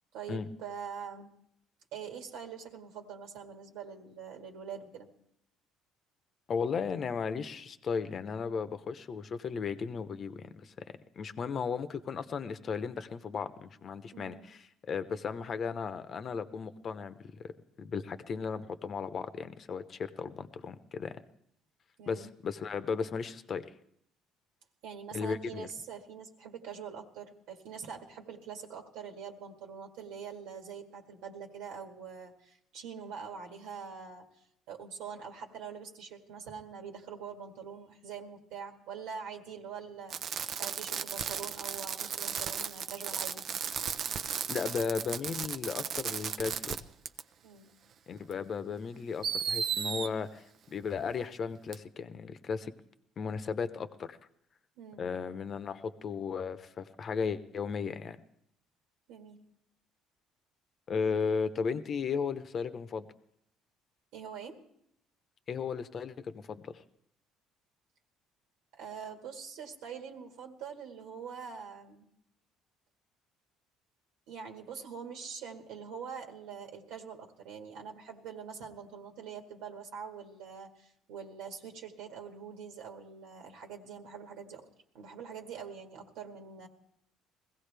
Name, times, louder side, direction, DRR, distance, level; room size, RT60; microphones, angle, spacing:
voice 1, 0.1-1.3 1.9-5.1 14.1-14.5 22.0-22.3 24.8-34.3 34.7-43.4 47.4-47.7 54.8-55.0 59.1-59.4 64.1-64.6 68.7-72.1 74.3-84.6 84.9-86.7, right 6 dB, 85° right, 2 dB, 1.8 m, -44 dB
voice 2, 6.5-10.7 11.2-17.1 17.4-17.5 17.8-21.2 22.1-23.6 25.1-25.7 44.5-46.8 48.1-50.4 50.7-52.7 53.2-54.2 55.0-58.2 60.9-63.1 65.5-66.7, left 5 dB, 40° left, 12 dB, 0.9 m, -35 dB
Fireworks, 40.1-46.8 47.1-47.2 48.3-48.4 49.2-50.1 51.7-51.8, right 7 dB, 50° right, 0.6 m, -35 dB
21.5 x 16.0 x 3.4 m, 0.73 s
cardioid pair, 110°, 0 cm